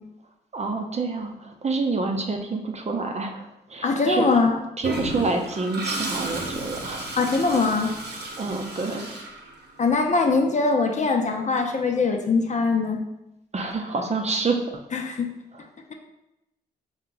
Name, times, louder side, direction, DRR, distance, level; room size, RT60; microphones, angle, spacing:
voice 1, 0.5-4.3 4.8-7.2 8.4-9.1 13.5-14.7 15.5-15.6, right 3 dB, 35° right, 3 dB, 0.7 m, -28 dB
voice 2, 3.8-4.6 7.2-7.9 9.8-13.0 14.9-15.3, left 4 dB, 40° left, 3 dB, 0.7 m, -22 dB
Toilet flush, 4.8-9.9, right 2 dB, 65° right, 1.0 m, -33 dB
4.3 x 2.3 x 3.9 m, 0.90 s
hypercardioid pair, 45°, 19 cm